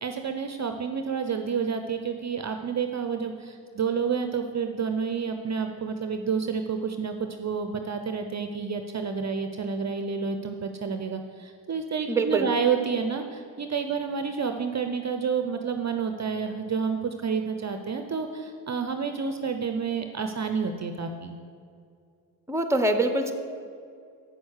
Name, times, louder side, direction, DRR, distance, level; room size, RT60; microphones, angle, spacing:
voice 1, 0.0-21.4, right 6 dB, 35° right, 6 dB, 0.7 m, -29 dB
voice 2, 12.1-12.5 22.5-23.3, right 2 dB, 5° right, 7 dB, 0.8 m, -24 dB
7.9 x 6.3 x 6.4 m, 2.3 s
supercardioid pair, 55°, 46 cm